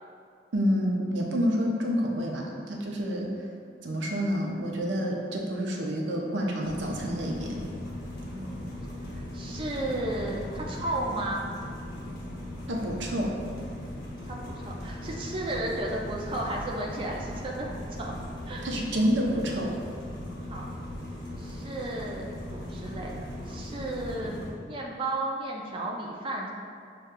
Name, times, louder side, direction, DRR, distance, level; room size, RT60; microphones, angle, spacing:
voice 1, 0.5-3.3 3.8-7.6 12.7-13.3 18.6-19.7, equal, 85° right, -1 dB, 0.6 m, -28 dB
sound 1, 6.6-24.5, left 1 dB, 55° left, 0.8 m, -38 dB
voice 2, 8.3-8.7 9.1-11.4 14.3-18.1 18.5-18.6 20.5-20.7 21.4-26.5, right 1 dB, 30° right, -2 dB, 0.3 m, -34 dB
6.3 x 2.2 x 2.2 m, 2.3 s
head